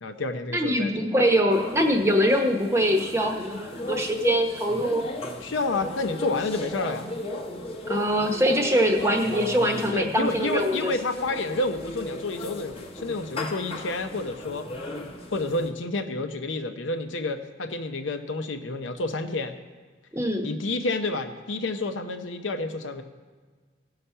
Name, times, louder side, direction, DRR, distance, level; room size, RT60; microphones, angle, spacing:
voice 1, 0.0-0.9 5.4-7.1 9.9-14.7 15.3-19.5 20.4-23.0, left 2 dB, 90° left, 7 dB, 0.8 m, -29 dB
voice 2, 0.5-5.0 7.9-10.9 20.1-20.5, equal, 15° right, 3 dB, 0.9 m, -23 dB
sound 1, 1.5-15.7, left 1 dB, 30° left, 0.9 m, -36 dB
17.0 x 5.8 x 5.6 m, 1.5 s
head